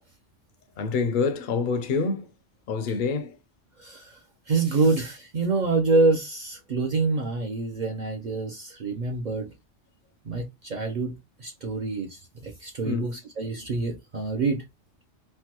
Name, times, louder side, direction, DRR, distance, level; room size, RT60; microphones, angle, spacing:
voice 1, 0.8-2.3 2.7-3.4 12.8-13.2, left 4 dB, 60° left, 0.5 m, -26 dB
voice 2, 3.8-4.2 4.5-9.5 10.3-11.1 11.4-14.6, right 3 dB, 55° right, 0.5 m, -26 dB
3.2 x 2.2 x 2.9 m
omnidirectional pair, 1.2 m